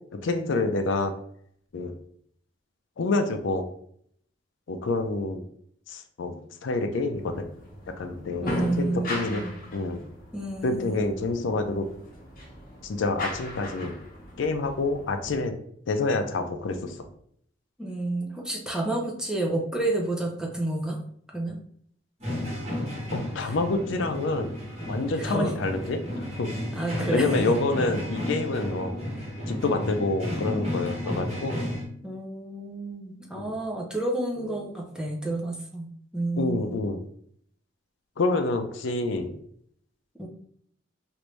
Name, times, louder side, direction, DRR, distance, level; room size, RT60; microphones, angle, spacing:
voice 1, 0.1-1.1 1.7-1.9 3.0-3.6 4.7-5.4 5.9-6.3 6.6-7.5 7.9-9.4 9.7-10.0 10.6-11.9 12.8-13.9 14.4-15.5 15.9-17.1 23.1-24.5 24.9-26.5 27.1-29.0 29.5-31.6 33.4-33.5 34.4-34.6 36.4-37.0 38.2-39.3, left 3 dB, 70° left, 6 dB, 0.4 m, -27 dB
sound 1, 7.2-15.4, left 1 dB, 45° left, 0.9 m, -38 dB
voice 2, 8.4-9.6 10.3-11.2 17.8-21.0 21.3-21.6 23.4-23.5 25.1-25.5 26.7-27.5 32.0-35.9 36.1-36.9 40.2-40.3, right 2 dB, 5° right, 0 dB, 0.5 m, -30 dB
sound 2, 22.2-31.8, left 1 dB, 30° right, 1.2 m, -32 dB
3.2 x 2.5 x 3.1 m, 0.64 s
head